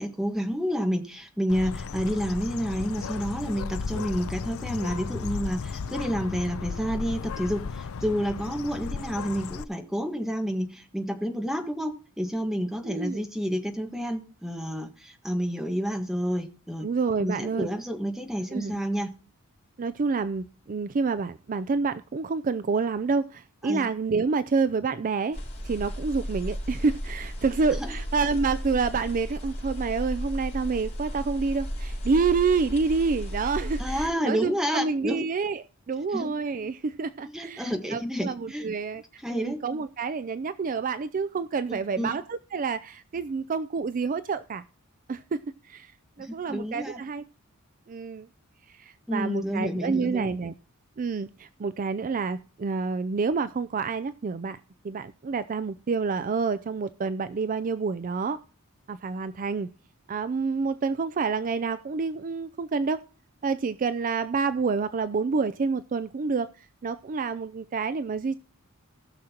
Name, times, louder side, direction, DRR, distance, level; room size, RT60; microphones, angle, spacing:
voice 1, 0.0-16.9 17.2-19.1 23.6-23.9 27.7-27.9 33.8-35.2 36.1-36.3 37.3-38.7 39.2-39.6 41.7-42.1 46.2-47.0 49.1-50.3, equal, ahead, 4 dB, 1.5 m, -29 dB
Bird, 1.5-9.6, left 5 dB, 70° left, 0.5 m, -35 dB
voice 2, 12.8-13.3 16.8-17.7 18.5-18.8 19.8-25.4 25.6-39.0 39.3-44.6 45.1-45.4 45.7-45.9 46.2-47.2 47.9-48.3 48.7-50.5 51.0-54.6 54.8-58.4 58.9-59.7 60.1-63.0 63.4-66.5 66.8-68.4, right 4 dB, 40° right, 13 dB, 0.4 m, -28 dB
sound 1, 25.3-34.1, equal, 35° left, 5.1 m, -34 dB
19.0 x 6.4 x 2.9 m, 0.38 s
head